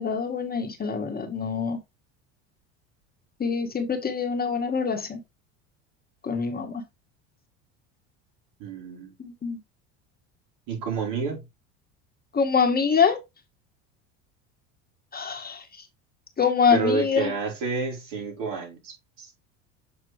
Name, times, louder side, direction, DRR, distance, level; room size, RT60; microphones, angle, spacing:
voice 1, 0.0-1.8 3.4-5.2 6.2-6.8 9.2-9.6 12.3-13.2 15.1-15.6 16.4-17.3, left 6 dB, 25° left, 1.4 m, -25 dB
voice 2, 8.6-9.1 10.7-11.4 16.7-19.3, right 4 dB, 60° right, 4.2 m, -29 dB
7.6 x 4.3 x 3.2 m
hypercardioid pair, 85°, 37 cm